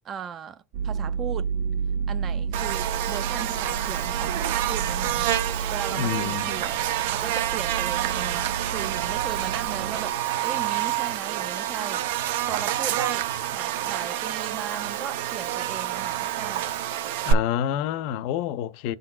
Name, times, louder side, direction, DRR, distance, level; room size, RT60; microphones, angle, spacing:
voice 1, 0.0-1.5 2.1-5.3 5.7-6.7 7.1-12.1 12.5-13.3 13.5-16.7, right 8 dB, 30° right, 0.4 m, -37 dB
sound 1, 0.7-10.1, right 6 dB, 60° right, 1.3 m, -31 dB
Buzz, 2.5-17.3, right 12 dB, 75° right, 0.7 m, -28 dB
voice 2, 6.0-6.6 17.2-18.9, left 10 dB, 60° left, 0.5 m, -28 dB
11.5 x 3.9 x 2.3 m
supercardioid pair, 150°, 0 cm